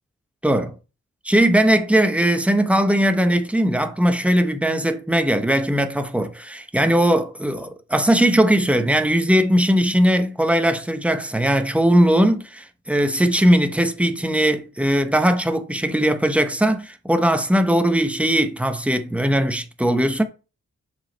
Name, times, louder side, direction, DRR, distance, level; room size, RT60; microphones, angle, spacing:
voice 1, 0.4-0.7 1.2-20.2, right 1 dB, 5° right, 0.9 m, -19 dB
7.4 x 5.1 x 4.0 m
wide cardioid pair, 100°, 30 cm